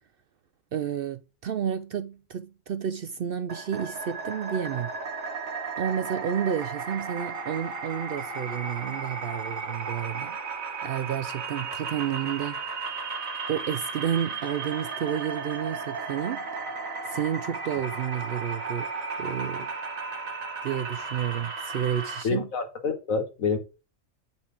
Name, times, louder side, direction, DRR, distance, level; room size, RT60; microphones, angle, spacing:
voice 1, 0.7-4.9 5.8-10.4 10.8-12.8 13.5-16.5 17.0-18.9 19.2-19.7 20.6-22.5, right 9 dB, 65° right, 0.6 m, -31 dB
sound 1, 3.5-22.2, right 4 dB, 85° right, 1.8 m, -34 dB
voice 2, 22.2-23.6, left 4 dB, 90° left, 1.8 m, -27 dB
8.2 x 5.3 x 5.1 m
omnidirectional pair, 1.4 m